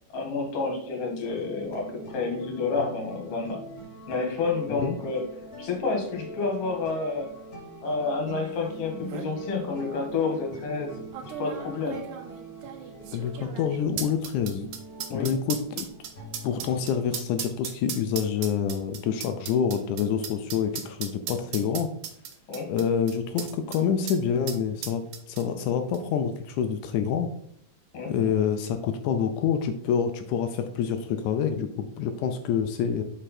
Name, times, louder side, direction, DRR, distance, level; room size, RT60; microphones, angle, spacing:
voice 1, 0.1-3.6 4.1-5.2 5.6-7.3 7.8-11.0 11.4-12.0 15.1-15.3 22.5-22.7 27.9-28.1, left 4 dB, 50° left, 1 dB, 2.3 m, -29 dB
sound 1, 1.3-16.8, right 1 dB, 30° left, 2.2 m, -43 dB
voice 2, 4.7-5.0 13.1-14.7 15.1-15.9 16.4-21.9 22.7-27.3 28.1-33.0, left 7 dB, 80° left, 7 dB, 1.8 m, -27 dB
sound 2, 8.6-8.7 8.9-9.3 10.1-10.2 11.1-23.8 24.1-24.2 24.5-25.7 25.9-26.0, right 8 dB, 75° right, 2.2 m, -37 dB
6.2 x 5.5 x 4.2 m, 0.64 s
omnidirectional pair, 3.9 m